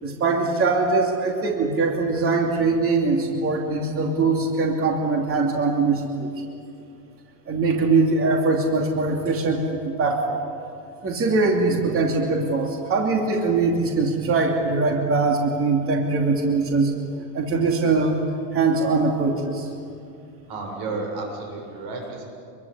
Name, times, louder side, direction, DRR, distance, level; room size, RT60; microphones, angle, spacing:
voice 1, 0.0-6.3 7.5-10.4 11.0-16.9 17.3-18.2 18.5-19.7, right 3 dB, 25° right, 1 dB, 2.8 m, -22 dB
voice 2, 20.5-22.3, right 3 dB, 50° right, 1 dB, 7.5 m, -32 dB
26.0 x 23.0 x 8.5 m, 2.5 s
supercardioid pair, 145°, 49 cm